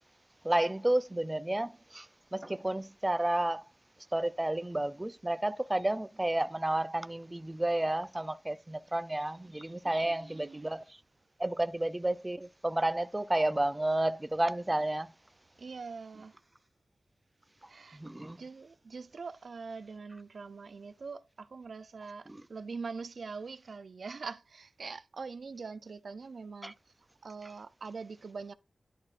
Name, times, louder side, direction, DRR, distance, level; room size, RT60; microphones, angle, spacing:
voice 1, 0.4-2.1 2.3-3.6 4.1-10.8 11.4-15.1 17.9-18.4 26.6-26.7, right 1 dB, 20° right, 0.5 m, -31 dB
voice 2, 9.8-10.7 15.6-16.4 17.7-18.0 18.4-26.7 27.2-28.5, right 4 dB, 75° right, 0.5 m, -43 dB
11.0 x 6.4 x 2.5 m
wide cardioid pair, 80°, 0 cm